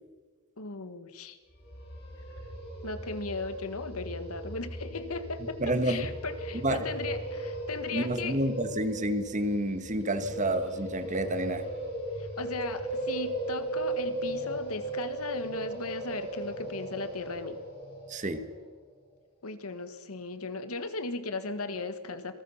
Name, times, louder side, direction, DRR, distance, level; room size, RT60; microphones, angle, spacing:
voice 1, 0.6-1.4 2.8-8.4 12.2-17.6 19.4-22.4, left 3 dB, 85° left, 11 dB, 1.7 m, -37 dB
sound 1, 1.6-18.5, right 1 dB, 45° left, 7.5 m, -37 dB
voice 2, 5.6-6.1 6.6-6.9 7.9-11.7 18.1-18.4, right 1 dB, 35° right, 9 dB, 1.4 m, -29 dB
26.0 x 19.5 x 5.8 m, 1.5 s
head